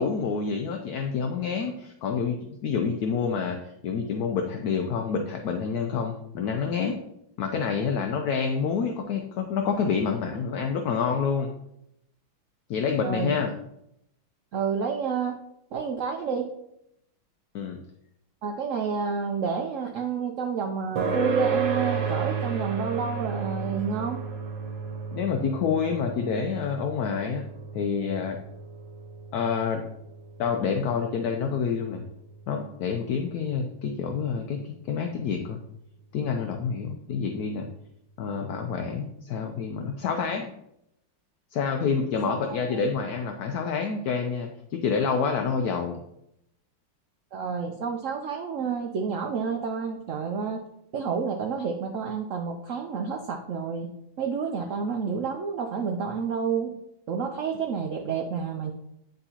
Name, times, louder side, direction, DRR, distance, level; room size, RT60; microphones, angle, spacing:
voice 1, 0.0-3.6 3.8-7.0 7.4-11.5 12.7-13.5 17.5-17.8 25.1-27.5 27.7-28.4 29.3-29.8 30.4-32.0 32.5-35.6 36.1-37.7 38.2-40.5 41.5-46.0, left 6 dB, 70° left, 4 dB, 1.0 m, -28 dB
voice 2, 13.0-13.4 14.5-15.4 15.7-16.5 18.4-24.2 42.3-42.8 47.3-50.6 50.9-53.9 54.2-56.7 57.1-58.7, right 6 dB, 85° right, 3 dB, 0.7 m, -29 dB
sound 1, 21.0-35.9, right 6 dB, 70° right, 1.6 m, -34 dB
9.9 x 3.9 x 2.8 m, 0.79 s
omnidirectional pair, 2.1 m